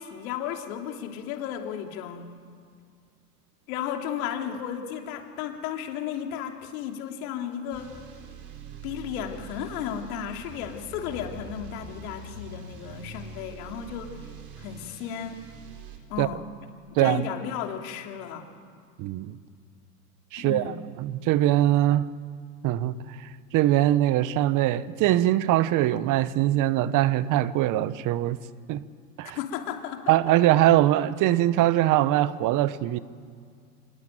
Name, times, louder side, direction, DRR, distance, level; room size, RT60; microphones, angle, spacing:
voice 1, 0.0-2.3 3.7-7.9 8.8-14.2 14.6-15.4 16.1-16.4 16.9-18.5 20.4-20.8 29.3-30.4, left 9 dB, 65° left, 3.1 m, -34 dB
sound 1, 7.7-16.0, right 4 dB, 60° right, 5.9 m, -44 dB
voice 2, 17.0-17.3 19.0-19.4 20.3-22.1 22.6-28.4 28.7-28.8 29.2-29.4 30.1-33.0, right 14 dB, 40° right, 1.0 m, -22 dB
25.5 x 21.0 x 9.1 m
hypercardioid pair, 110°, 46 cm